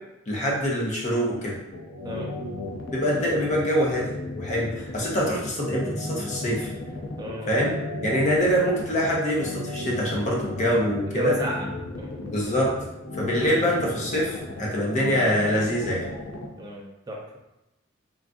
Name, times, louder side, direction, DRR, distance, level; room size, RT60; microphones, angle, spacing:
voice 1, 0.3-1.6 2.9-6.7 7.5-7.7 8.0-11.3 12.2-12.7 13.2-16.1, equal, 35° left, -3 dB, 0.7 m, -25 dB
sound 1, 1.7-16.5, left 2 dB, 70° left, 0.5 m, -35 dB
voice 2, 7.2-7.5 11.1-11.7 12.0-12.1 16.6-17.4, equal, 20° right, -2 dB, 0.5 m, -30 dB
3.8 x 2.3 x 2.3 m, 0.95 s
head